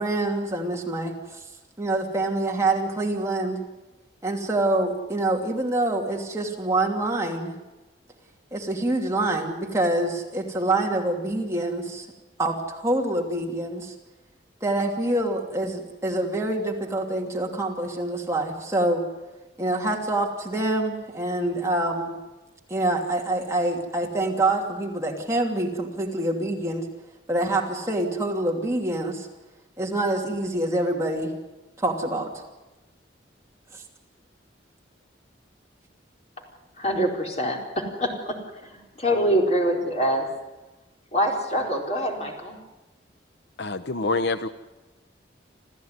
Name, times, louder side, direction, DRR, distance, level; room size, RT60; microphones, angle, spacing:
voice 1, 0.0-1.4 1.8-3.6 4.2-7.5 8.5-12.1 12.4-13.9 14.6-19.1 19.6-22.1 22.7-26.9 27.3-29.3 29.8-31.3 31.8-32.3 33.7-33.8, right 2 dB, 15° right, 0 dB, 2.8 m, -26 dB
voice 2, 36.8-40.3 41.1-42.6, equal, 35° left, 1 dB, 4.4 m, -25 dB
voice 3, 43.6-44.5, left 3 dB, 65° left, 11 dB, 0.8 m, -26 dB
27.5 x 15.0 x 9.6 m, 1.1 s
head